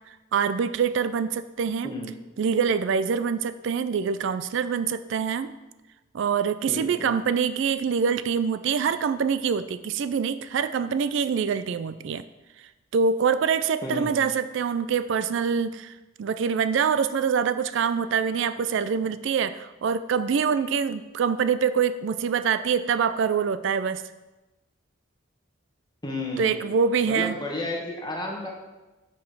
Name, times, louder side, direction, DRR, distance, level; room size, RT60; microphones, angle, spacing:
voice 1, 0.3-1.9 2.4-5.5 6.1-12.2 12.9-15.9 16.2-24.0 26.4-27.4, right 6 dB, 65° right, 13 dB, 0.3 m, -25 dB
voice 2, 1.8-2.2 6.7-7.1 13.8-14.2 26.0-26.7 27.0-28.5, left 1 dB, 20° left, -1 dB, 1.0 m, -32 dB
5.8 x 5.3 x 6.0 m, 1.1 s
head